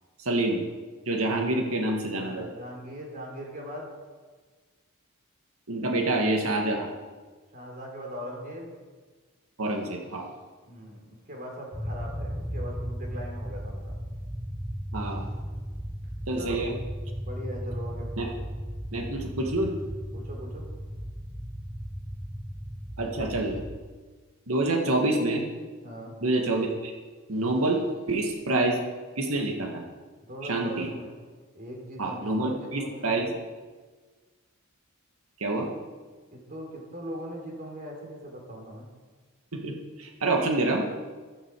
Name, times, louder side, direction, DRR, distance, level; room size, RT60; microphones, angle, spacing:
voice 1, 0.2-0.6 1.1-2.5 5.7-6.9 9.6-10.3 14.9-15.3 16.3-16.7 18.2-18.3 18.9-19.7 23.0-23.6 24.5-25.5 26.2-26.9 27.3-27.8 28.1-28.8 29.2-29.8 30.4-30.9 32.0-33.4 35.4-35.7 39.5-40.8, right 2 dB, 85° right, 1 dB, 2.0 m, -27 dB
voice 2, 2.1-3.9 7.5-8.7 10.7-14.0 16.3-16.7 17.2-18.4 20.1-20.7 25.8-26.2 30.3-31.1 31.5-33.1 36.3-38.9, equal, 40° right, 0 dB, 3.7 m, -40 dB
sound 1, 11.7-23.8, equal, 5° right, 0.9 m, -36 dB
15.0 x 13.0 x 4.8 m, 1.4 s
head